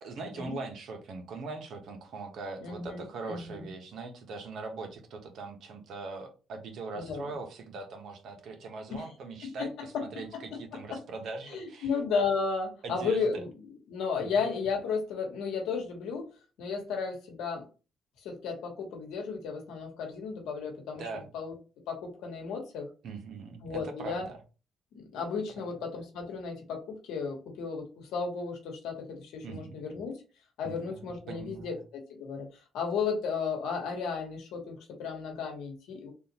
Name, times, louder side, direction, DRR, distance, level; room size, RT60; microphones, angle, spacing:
voice 1, 0.0-11.9 12.8-13.4 14.2-14.5 20.9-21.3 23.0-24.4 25.5-25.6 29.4-29.8 30.6-31.8, right 3 dB, 70° right, 4 dB, 0.9 m, -41 dB
voice 2, 2.6-3.6 6.9-7.3 8.9-9.1 9.4-11.0 11.5-13.5 13.9-16.3 16.6-17.6 18.2-21.0 21.3-21.5 21.9-22.9 23.6-24.2 25.1-30.2 30.6-32.5 32.7-36.1, left 5 dB, 90° left, 2 dB, 1.1 m, -34 dB
3.6 x 2.4 x 2.9 m, 0.33 s
cardioid pair, 90°, 0 cm